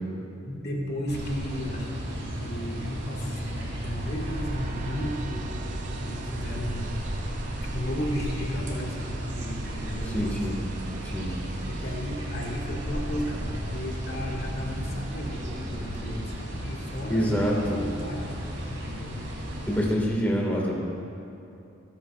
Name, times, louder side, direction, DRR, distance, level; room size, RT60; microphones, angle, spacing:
voice 1, 0.4-6.9 7.3-10.4 11.6-18.3 18.7-19.2, equal, 55° left, -3 dB, 1.9 m, -34 dB
sound 1, 1.1-19.9, equal, 75° right, 3.1 m, -35 dB
sound 2, 3.2-16.2, right 3 dB, 40° right, 0.5 m, -40 dB
voice 2, 10.0-10.6 11.0-11.3 17.1-17.8 19.7-20.7, equal, 10° left, -4 dB, 1.8 m, -26 dB
28.5 x 9.9 x 2.4 m, 2.8 s
head